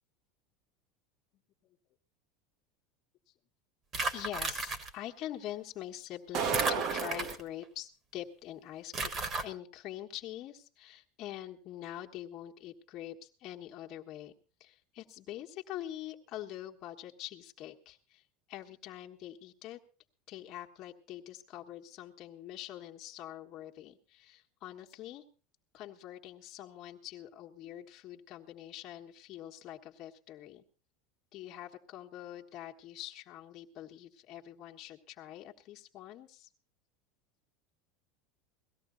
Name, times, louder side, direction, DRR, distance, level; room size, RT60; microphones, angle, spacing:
sound 1, 3.9-4.9 6.5-7.6 8.9-9.4, right 3 dB, 25° right, 1.5 m, -34 dB
voice 1, 4.1-9.1 9.4-14.3 14.6-18.2 18.5-19.8 20.3-25.2 25.7-30.6 31.3-36.5, left 13 dB, 40° left, 2 dB, 1.4 m, -45 dB
sound 2, 6.3-7.4, right 7 dB, 45° right, 1.2 m, -32 dB
18.0 x 14.0 x 3.9 m, 0.37 s
supercardioid pair, 160°, 0 cm